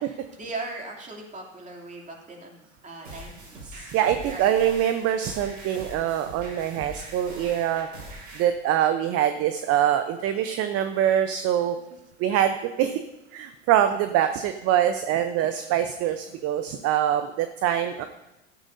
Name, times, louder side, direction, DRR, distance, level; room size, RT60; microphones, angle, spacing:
voice 1, 0.0-3.9 4.3-4.6 11.9-12.0, right 2 dB, 20° right, 0 dB, 2.9 m, -39 dB
sound 1, 3.0-8.4, right 1 dB, 85° right, 5.4 m, -42 dB
voice 2, 3.9-7.9 8.3-11.8 12.2-13.0 13.3-18.1, right 10 dB, 40° right, 9 dB, 0.8 m, -24 dB
16.5 x 13.0 x 2.7 m, 0.94 s
hypercardioid pair, 85°, 36 cm